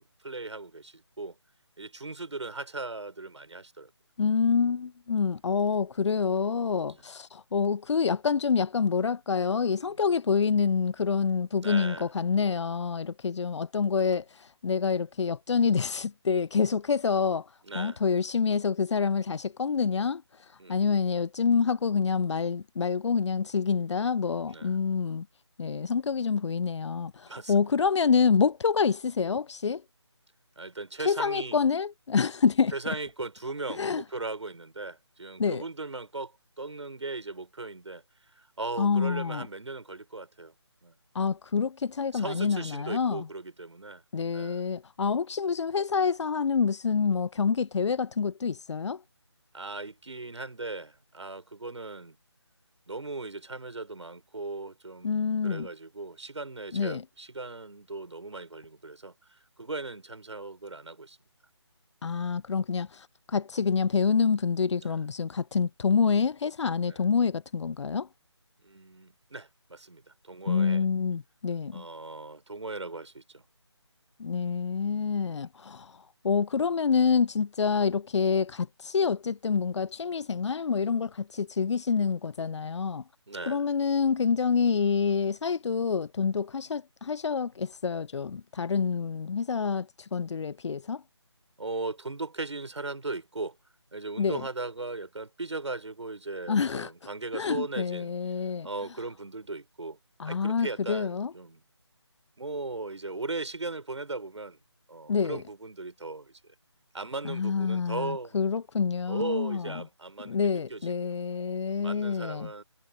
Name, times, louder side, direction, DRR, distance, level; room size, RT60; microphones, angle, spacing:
voice 1, 0.2-1.4 1.8-3.9 6.9-7.1 9.8-10.0 11.6-12.1 17.6-18.0 20.6-20.8 24.5-24.8 27.2-27.7 30.6-31.6 32.7-40.5 40.8-41.0 42.1-44.0 44.3-44.6 49.5-52.2 52.9-61.2 64.8-65.0 66.8-67.0 68.6-70.9 71.7-73.4 74.4-74.6 75.3-75.4 83.3-83.6 91.6-93.6 93.9-98.1 98.6-100.0 100.2-101.6 102.4-104.6 104.9-106.4 106.9-108.4 109.1-110.4 110.7-111.1 111.8-112.6, right 3 dB, 80° right, 6.1 m, -38 dB
voice 2, 4.2-17.5 17.7-25.3 25.6-29.8 31.0-32.7 33.7-34.0 35.4-35.6 38.8-39.5 41.1-43.3 44.1-49.0 55.0-55.7 56.7-57.0 62.0-68.1 70.5-71.8 74.2-83.0 83.5-91.0 94.2-94.5 96.5-96.9 97.3-98.7 100.2-101.3 105.1-105.4 107.2-109.8 110.3-112.5, left 5 dB, 75° left, 0.4 m, -27 dB
figure-of-eight pair, 170°, 15 cm